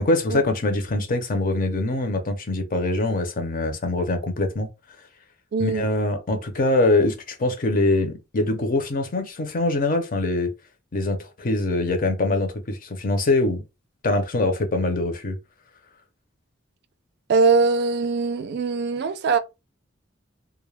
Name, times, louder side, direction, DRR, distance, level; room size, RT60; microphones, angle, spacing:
voice 1, 0.0-4.7 5.6-10.5 10.9-13.6 14.0-15.4, left 2 dB, 45° left, 0.6 m, -23 dB
voice 2, 5.5-5.9 17.3-19.4, right 4 dB, 60° right, 0.4 m, -21 dB
2.3 x 2.1 x 3.2 m
head